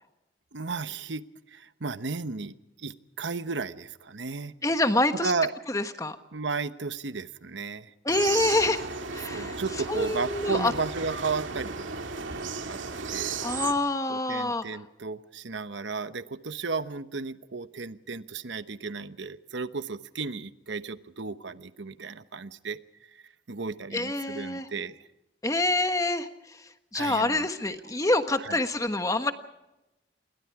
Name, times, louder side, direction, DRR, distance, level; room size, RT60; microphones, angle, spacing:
voice 1, 0.5-4.5 5.2-5.5 6.3-7.9 9.3-13.4 14.1-23.2 23.5-25.1 26.9-27.5 28.4-28.6, right 4 dB, 75° right, 12 dB, 1.0 m, -34 dB
voice 2, 4.6-5.3 5.7-6.2 8.0-8.9 9.1-9.6 9.9-10.7 13.4-14.6 23.9-24.7 25.4-29.3, left 2 dB, 15° left, 8 dB, 1.3 m, -26 dB
sound 1, 8.1-13.7, right 5 dB, 90° right, 2.2 m, -34 dB
28.0 x 22.5 x 4.8 m, 0.94 s
head